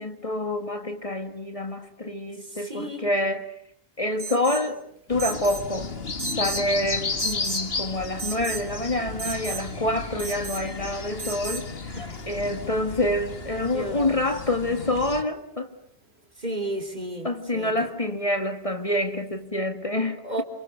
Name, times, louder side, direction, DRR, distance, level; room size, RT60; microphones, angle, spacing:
voice 1, 0.0-3.5 4.0-4.8 5.1-5.9 6.4-12.0 12.3-15.7 17.2-20.4, left 1 dB, 30° left, 2.1 m, -27 dB
voice 2, 2.4-3.1 11.9-12.3 13.6-14.2 16.4-17.9 20.2-20.4, right 1 dB, 45° right, 3.9 m, -34 dB
Alarm, 4.2-4.7 5.2-5.7 6.2-6.7 7.2-7.7 8.2-8.7 9.2-9.6 10.2-10.6 11.2-11.6, right 6 dB, 85° right, 4.2 m, -34 dB
sound 1, 5.1-15.2, left 4 dB, 70° left, 2.1 m, -34 dB
29.0 x 28.5 x 6.6 m
omnidirectional pair, 1.1 m